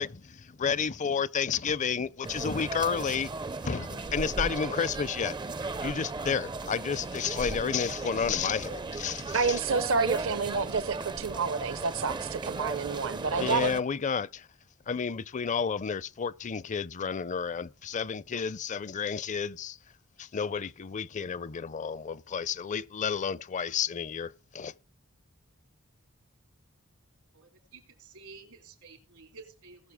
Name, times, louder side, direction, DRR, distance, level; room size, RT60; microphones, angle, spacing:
voice 1, 0.0-3.3 3.6-5.4 5.8-9.6 13.4-14.5 14.9-19.8 20.2-24.7, left 6 dB, 35° left, 0.5 m, -31 dB
sound 1, 2.2-13.8, right 3 dB, 20° right, 0.4 m, -36 dB
voice 2, 9.3-13.7, right 5 dB, 65° right, 0.8 m, -29 dB
voice 3, 27.3-29.9, right 4 dB, 85° right, 3.6 m, -51 dB
19.5 x 6.7 x 3.5 m
head